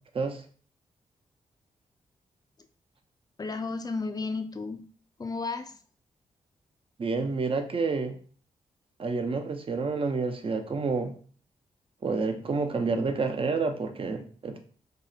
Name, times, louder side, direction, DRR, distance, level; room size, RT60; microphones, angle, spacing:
voice 1, 3.4-4.8 5.2-5.8, left 3 dB, 25° left, 7 dB, 0.4 m, -33 dB
voice 2, 7.0-8.2 9.0-11.2 12.0-14.6, right 4 dB, 35° right, 6 dB, 0.5 m, -29 dB
2.7 x 2.0 x 2.4 m, 0.42 s
supercardioid pair, 40°, 15 cm